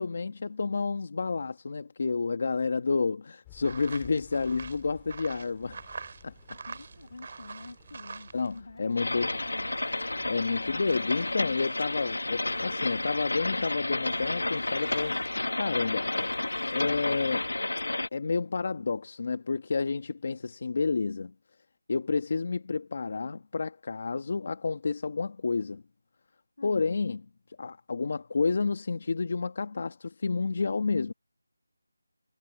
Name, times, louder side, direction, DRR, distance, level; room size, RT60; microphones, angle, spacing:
voice 1, 0.0-5.9 6.2-6.3 8.3-9.3 10.3-16.3 16.7-17.5 18.1-21.3 21.9-25.8 26.6-27.2 27.6-31.1, left 4 dB, 40° left, 1.3 m, -30 dB
sound 1, 3.4-11.4, left 21 dB, 10° left, 3.3 m, -57 dB
sound 2, 3.6-8.6 8.9-17.5, right 4 dB, 35° right, 3.2 m, -47 dB
voice 2, 6.7-9.7 26.6-27.0, left 3 dB, 60° left, 6.4 m, -46 dB
sound 3, 9.0-18.1, left 2 dB, 85° left, 1.5 m, -31 dB
figure-of-eight pair, 175°, 0 cm